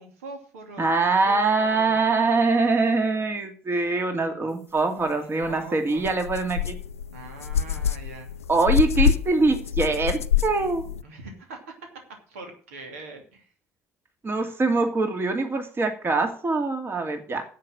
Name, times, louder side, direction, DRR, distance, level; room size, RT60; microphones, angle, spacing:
voice 1, 0.0-2.0 5.2-6.1 7.1-8.3 11.0-11.7 12.3-13.5, right 3 dB, 75° right, 4 dB, 2.7 m, -42 dB
voice 2, 0.8-6.8 8.5-10.8 14.2-17.4, right 3 dB, 30° right, 5 dB, 2.5 m, -23 dB
sound 1, 5.4-5.5 6.0-11.0, left 9 dB, 85° left, 0.4 m, -26 dB
10.5 x 8.5 x 6.4 m, 0.43 s
figure-of-eight pair, 55°, 8 cm